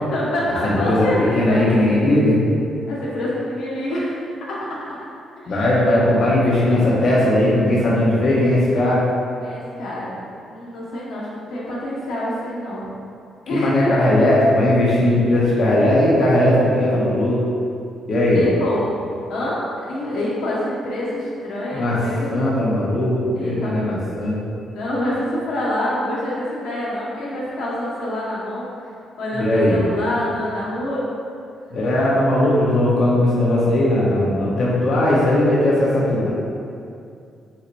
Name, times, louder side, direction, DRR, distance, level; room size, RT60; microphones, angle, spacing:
voice 1, 0.1-1.9 2.9-4.8 5.4-5.6 9.4-10.1 10.5-12.8 13.5-14.1 18.3-18.9 19.3-19.6 19.9-22.3 22.9-23.0 23.3-23.9 24.7-28.7 29.2-31.0, left 1 dB, 85° left, -7 dB, 1.1 m, -26 dB
voice 2, 0.6-1.1 1.3-2.3 5.5-9.0 13.5-17.4 18.1-18.4 21.7-22.0 22.3-24.4 29.3-29.8 31.7-36.3, left 1 dB, 55° left, -7 dB, 0.8 m, -18 dB
5.6 x 3.1 x 2.6 m, 2.4 s
cardioid pair, 110°, 0 cm